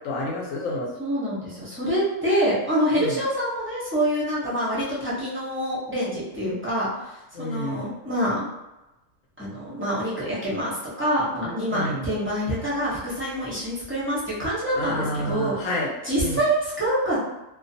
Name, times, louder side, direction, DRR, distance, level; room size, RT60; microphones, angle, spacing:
voice 1, 0.0-0.9 3.0-3.2 7.3-7.9 11.7-12.1 14.7-15.9 16.2-16.4, left 1 dB, 80° left, -2 dB, 1.0 m, -29 dB
voice 2, 1.0-8.5 9.4-15.6 16.0-17.2, equal, 15° right, -9 dB, 0.4 m, -26 dB
2.4 x 2.3 x 2.6 m, 1.0 s
omnidirectional pair, 1.4 m